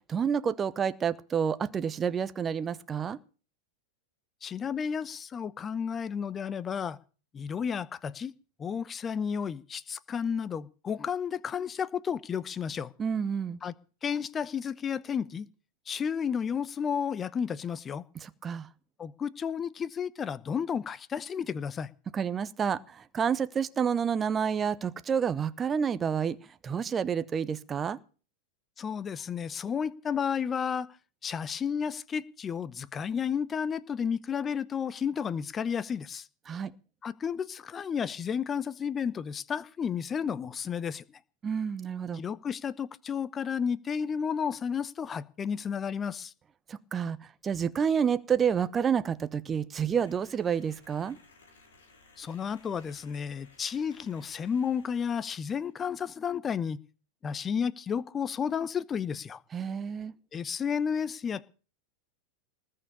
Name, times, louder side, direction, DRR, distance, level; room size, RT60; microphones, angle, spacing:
voice 1, 0.1-3.2 13.0-13.6 18.1-18.7 22.1-26.4 26.6-28.0 36.5-36.7 41.4-42.2 46.7-47.2 47.4-51.2 59.5-60.1, right 7 dB, 20° right, 0.8 m, -29 dB
voice 2, 4.4-7.0 7.3-8.3 8.6-12.9 13.6-13.7 14.0-15.5 15.9-18.0 19.0-21.9 28.8-30.9 31.2-36.3 37.0-41.0 42.1-46.3 52.2-56.8 57.2-59.4 60.3-61.4, left 7 dB, 20° left, 0.8 m, -32 dB
sound 1, 49.9-55.7, left 3 dB, 65° left, 4.8 m, -59 dB
19.5 x 6.7 x 8.6 m
figure-of-eight pair, 90°, 0 cm